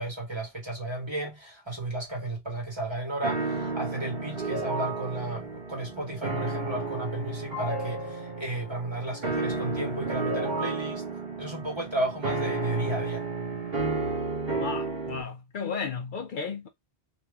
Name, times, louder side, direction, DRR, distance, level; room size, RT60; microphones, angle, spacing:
voice 1, 0.0-11.0 11.4-13.2, right 1 dB, 25° right, 1.5 m, -34 dB
sound 1, 3.2-15.2, right 3 dB, 65° right, 1.4 m, -32 dB
voice 2, 14.5-16.7, left 5 dB, 60° left, 0.6 m, -34 dB
2.9 x 2.6 x 3.4 m
omnidirectional pair, 1.0 m